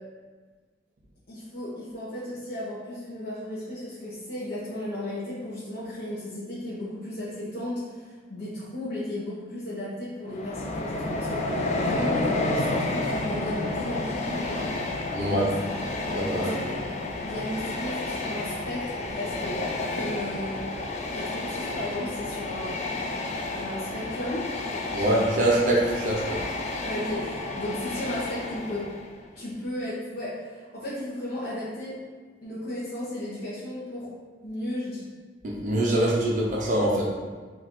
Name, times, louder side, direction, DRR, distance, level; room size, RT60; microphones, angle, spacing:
voice 1, 1.3-14.6 15.2-15.5 15.9-16.8 17.2-19.6 19.9-20.6 21.1-22.7 23.5-25.2 26.8-28.8 29.4-31.9 32.4-34.1 34.4-35.0 36.0-36.1, left 1 dB, 60° left, -8 dB, 0.9 m, -34 dB
Train, 10.3-29.2, left 2 dB, 40° left, 0.5 m, -31 dB
voice 2, 15.1-15.5 16.1-16.6 24.9-26.4 35.4-37.0, right 1 dB, 45° right, -4 dB, 0.7 m, -24 dB
3.9 x 2.5 x 4.6 m, 1.5 s
head